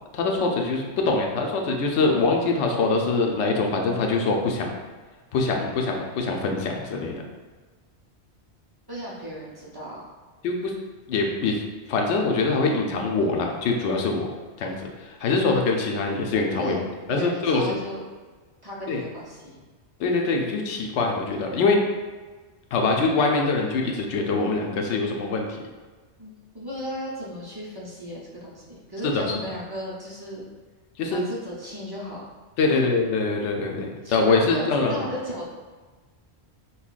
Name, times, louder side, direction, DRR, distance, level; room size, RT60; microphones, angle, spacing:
voice 1, 0.1-4.7 5.3-7.1 10.4-10.7 11.1-11.6 11.9-14.3 14.6-16.8 17.1-17.8 18.9-19.0 20.0-21.8 22.7-25.6 29.0-29.3 31.0-31.2 32.6-35.1, left 3 dB, 90° left, 1 dB, 0.9 m, -24 dB
voice 2, 8.9-10.0 16.6-16.8 17.1-18.0 18.6-19.6 26.2-30.4 31.1-32.3 32.7-32.8 34.0-35.5, equal, 30° right, -6 dB, 0.5 m, -35 dB
5.4 x 2.3 x 2.4 m, 1.4 s
omnidirectional pair, 1.1 m